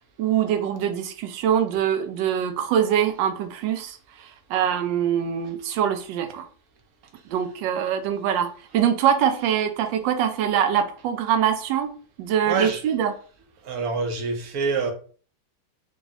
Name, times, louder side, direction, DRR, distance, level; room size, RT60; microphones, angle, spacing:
voice 1, 0.2-6.5 7.3-11.9 12.2-13.1, right 9 dB, 80° right, 1.3 m, -24 dB
voice 2, 12.5-12.8 13.6-14.9, right 4 dB, 65° right, 1.0 m, -26 dB
3.5 x 2.4 x 3.9 m
omnidirectional pair, 2.0 m